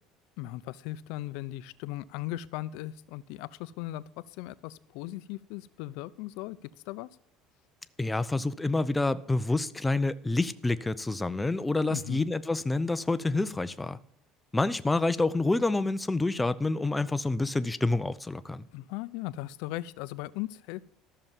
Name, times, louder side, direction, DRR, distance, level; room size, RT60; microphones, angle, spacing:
voice 1, 0.4-7.1 11.9-12.3 18.7-20.8, left 16 dB, 75° left, 0.6 m, -38 dB
voice 2, 8.0-14.0 14.5-18.6, left 2 dB, 10° left, 0.5 m, -28 dB
13.5 x 6.7 x 7.3 m
cardioid pair, 160°, 0 cm